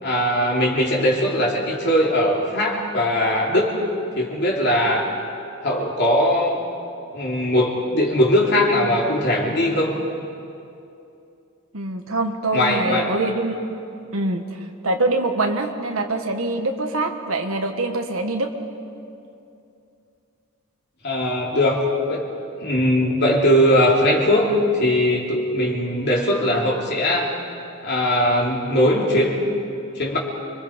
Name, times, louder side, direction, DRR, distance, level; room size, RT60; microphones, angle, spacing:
voice 1, 0.0-3.8 4.2-5.1 5.6-6.7 7.1-10.0 12.5-13.1 21.0-21.8 22.1-22.3 22.6-27.4 27.8-29.4 29.9-30.2, left 1 dB, 50° left, -2 dB, 3.2 m, -20 dB
voice 2, 11.7-13.6 14.1-18.5, right 2 dB, 70° right, 4 dB, 1.5 m, -24 dB
29.5 x 23.0 x 5.2 m, 2.6 s
head